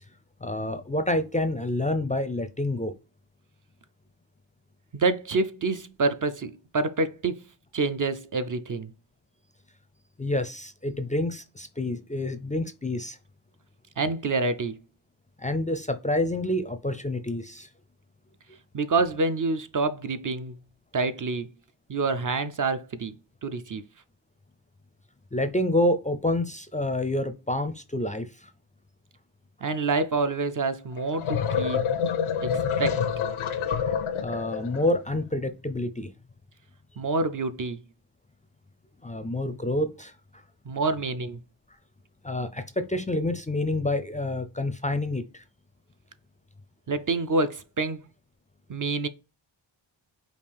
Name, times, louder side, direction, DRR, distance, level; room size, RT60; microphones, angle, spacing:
voice 1, 0.4-2.9 10.2-13.2 15.4-17.7 25.3-28.5 33.9-36.1 39.0-40.1 42.2-45.4, left 1 dB, 15° left, 0.4 m, -28 dB
voice 2, 4.9-7.4 7.7-8.9 14.0-14.8 18.7-20.5 20.9-21.5 21.9-23.8 29.6-31.9 32.4-33.0 37.0-37.8 40.7-41.4 46.9-48.0 48.7-49.1, right 3 dB, 45° right, 0.5 m, -27 dB
sound 1, 31.0-34.9, left 7 dB, 90° left, 0.6 m, -27 dB
5.2 x 2.4 x 3.4 m
cardioid pair, 60°, 48 cm